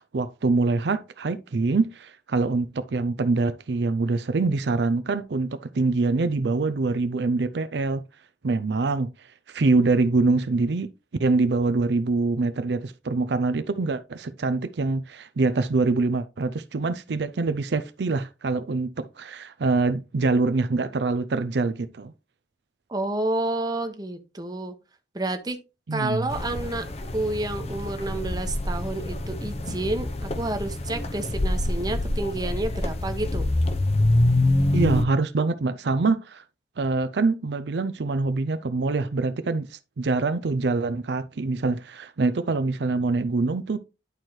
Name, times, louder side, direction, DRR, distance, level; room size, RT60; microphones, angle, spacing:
voice 1, 0.0-8.0 8.4-9.1 9.5-10.9 11.2-22.1 25.9-26.3 34.7-36.4 36.8-43.8, right 3 dB, 75° right, 0.5 m, -24 dB
voice 2, 22.9-24.7 25.1-25.6 25.9-33.5, right 2 dB, 20° right, 0.9 m, -29 dB
sound 1, 26.3-35.0, left 1 dB, 35° left, 0.7 m, -26 dB
11.0 x 4.5 x 3.1 m
head